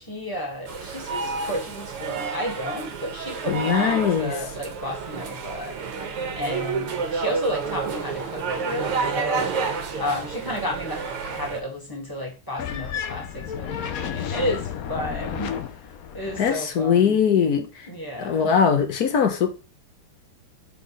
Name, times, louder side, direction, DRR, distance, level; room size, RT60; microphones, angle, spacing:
voice 1, 0.0-9.4 10.0-14.6 14.9-15.5 16.1-17.2 17.9-18.5, equal, 10° left, 1.8 m, -32 dB
sound 1, 0.7-11.6, right 5 dB, 80° right, 2.0 m, -30 dB
voice 2, 3.5-4.3 16.4-17.9 18.2-19.5, left 7 dB, 55° left, 1.2 m, -21 dB
sound 2, 12.6-16.6, left 8 dB, 80° left, 0.7 m, -32 dB
5.2 x 4.3 x 5.0 m
omnidirectional pair, 2.4 m